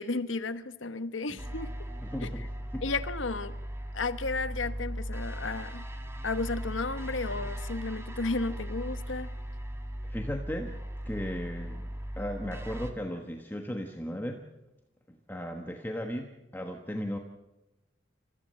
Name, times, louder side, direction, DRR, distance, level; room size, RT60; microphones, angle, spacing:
voice 1, 0.0-1.7 2.2-2.4 2.8-3.6 3.9-5.9 6.2-9.3, left 3 dB, 80° left, 12 dB, 1.1 m, -33 dB
sound 1, 1.4-12.9, equal, 15° right, 1.6 m, -38 dB
voice 2, 2.0-2.8 10.0-10.7 11.0-11.9 12.2-14.4 15.1-17.2, equal, 10° left, 3 dB, 1.3 m, -36 dB
28.0 x 15.0 x 7.6 m, 1.0 s
head